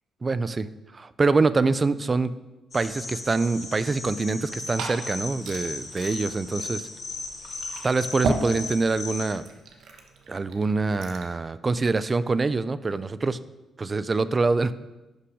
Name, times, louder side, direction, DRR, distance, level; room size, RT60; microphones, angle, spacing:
voice 1, 0.2-0.7 0.9-2.3 2.7-6.9 7.8-9.4 10.3-13.4 13.8-14.7, right 3 dB, 25° right, 15 dB, 0.4 m, -25 dB
sound 1, 2.7-9.3, left 3 dB, 35° left, 1.9 m, -37 dB
Liquid, 4.3-11.4, right 3 dB, 75° right, 1.2 m, -36 dB
11.5 x 5.8 x 4.9 m, 1.1 s
cardioid pair, 140°, 0 cm